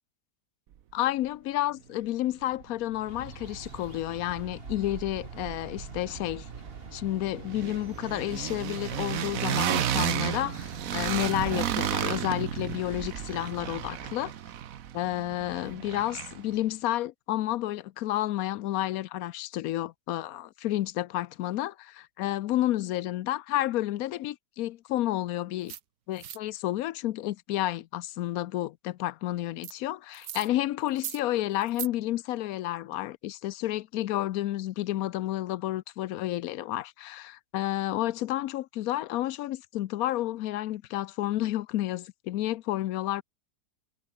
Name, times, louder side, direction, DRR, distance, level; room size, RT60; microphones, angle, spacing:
voice 1, 0.9-6.5 6.9-14.3 14.9-25.7 26.1-43.2, left 14 dB, 70° left, 0.9 m, -31 dB
sound 1, 2.6-2.7 3.0-4.1 4.4-16.6, right 10 dB, 60° right, 1.2 m, -33 dB
sound 2, 2.9-14.3, right 2 dB, 35° right, 3.5 m, -46 dB
sound 3, 25.7-25.8 26.2-26.4 29.6-29.7 30.1-30.5 30.9-31.2 31.6-31.9, right 11 dB, 85° right, 1.6 m, -38 dB
omnidirectional pair, 1.8 m